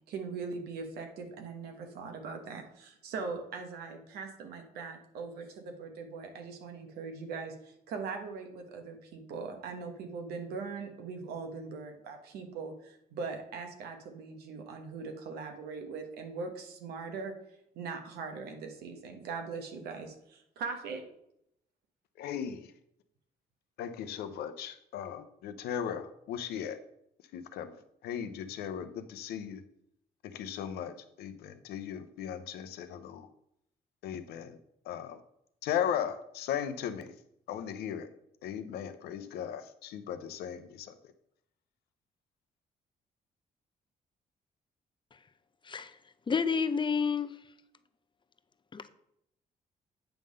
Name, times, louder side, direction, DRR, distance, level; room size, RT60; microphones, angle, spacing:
voice 1, 0.1-17.3 17.7-21.0, right 4 dB, 90° right, 1.5 m, -40 dB
voice 2, 22.2-22.7 23.8-26.8 27.3-29.6 30.2-33.3 34.0-34.6 34.8-35.2 35.6-37.1 37.5-38.1 38.4-41.1, left 9 dB, 90° left, 0.7 m, -37 dB
voice 3, 46.3-47.3 48.7-48.9, left 5 dB, 30° left, 0.6 m, -29 dB
9.0 x 3.7 x 6.6 m
cardioid pair, 75°, 16 cm